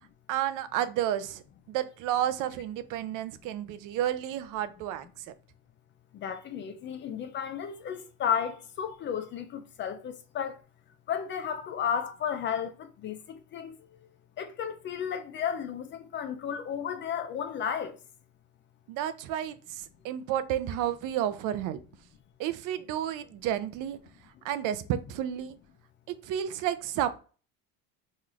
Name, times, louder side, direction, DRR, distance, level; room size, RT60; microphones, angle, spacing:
voice 1, 0.3-1.4 1.7-5.2 18.9-21.8 22.4-24.0 24.4-25.6 26.1-27.2, right 11 dB, 55° right, 0.5 m, -31 dB
voice 2, 6.1-10.6 11.1-14.0 14.4-18.0, left 8 dB, 30° left, 0.4 m, -33 dB
5.6 x 3.1 x 2.4 m
cardioid pair, 160°, 37 cm